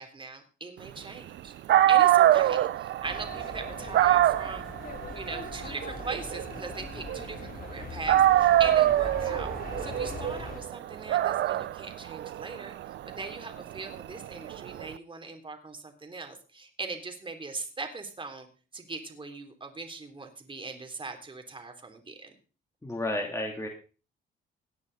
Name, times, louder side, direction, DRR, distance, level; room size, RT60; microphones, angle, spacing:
voice 1, 0.0-1.5 1.9-4.6 5.1-12.7 13.0-18.5 18.7-22.3, right 3 dB, 25° right, 5 dB, 3.3 m, -40 dB
Dog, 1.4-1.5 1.7-7.7 8.1-14.9, right 13 dB, 65° right, 0.5 m, -25 dB
sound 1, 3.0-10.6, left 4 dB, 45° left, 3.0 m, -41 dB
voice 2, 22.8-23.7, left 1 dB, 15° left, 0 dB, 3.0 m, -31 dB
18.0 x 9.6 x 4.1 m, 0.36 s
cardioid pair, 90°, 20 cm